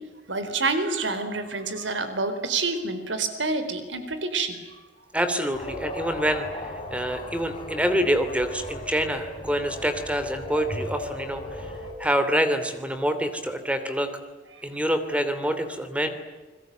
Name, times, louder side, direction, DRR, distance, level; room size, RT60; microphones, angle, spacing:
voice 1, 0.3-4.6, right 3 dB, 90° right, 9 dB, 4.3 m, -27 dB
voice 2, 5.1-11.7 12.0-14.1 14.6-16.1, equal, 5° right, 9 dB, 2.9 m, -26 dB
sound 1, 5.5-11.9, left 1 dB, 25° left, 4.4 m, -37 dB
29.0 x 21.5 x 9.2 m, 1.3 s
head